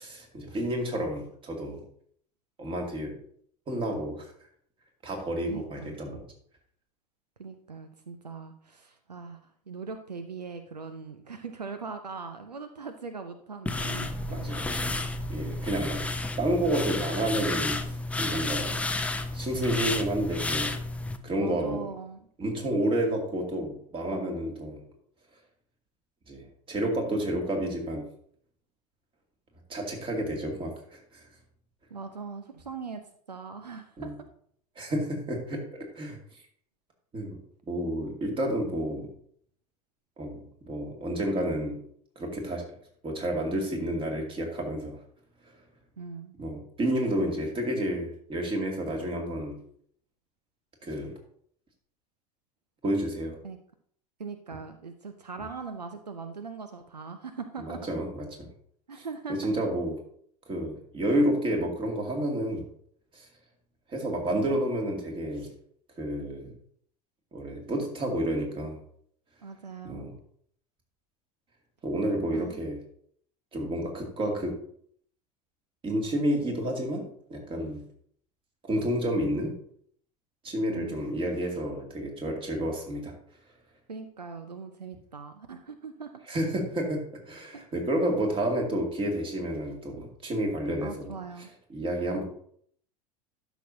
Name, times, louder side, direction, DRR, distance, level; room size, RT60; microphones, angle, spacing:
voice 1, 0.0-1.8 2.6-3.2 3.7-4.3 5.0-6.2 13.8-14.0 14.3-16.0 16.4-18.8 19.3-20.7 21.2-21.8 22.4-24.8 26.3-28.0 29.7-31.2 34.0-34.1 34.8-35.6 35.9-36.2 37.1-37.4 37.7-39.1 40.2-41.8 42.2-42.6 43.0-45.0 46.4-49.6 50.8-51.1 52.8-53.4 57.6-58.5 59.0-59.1 59.4-59.9 60.5-62.7 63.1-63.3 63.9-65.5 66.0-66.5 67.3-68.8 69.8-70.1 71.8-72.8 73.5-74.6 75.8-77.8 78.6-79.5 80.4-83.1 86.3-87.0 87.3-91.1 91.7-92.2, right 1 dB, 25° right, 2 dB, 2.3 m, -30 dB
voice 2, 5.5-5.9 7.4-14.5 21.4-22.3 31.9-33.0 33.3-34.1 46.0-46.3 53.4-53.6 54.2-57.8 58.9-59.5 69.4-70.1 72.3-72.6 80.7-81.1 83.9-86.1 87.5-87.6 90.8-91.5, right 5 dB, 80° right, 9 dB, 0.6 m, -40 dB
sound 1, 13.7-21.2, left 2 dB, 5° left, 0.6 m, -31 dB
12.0 x 6.1 x 2.7 m, 0.62 s
figure-of-eight pair, 80°, 20 cm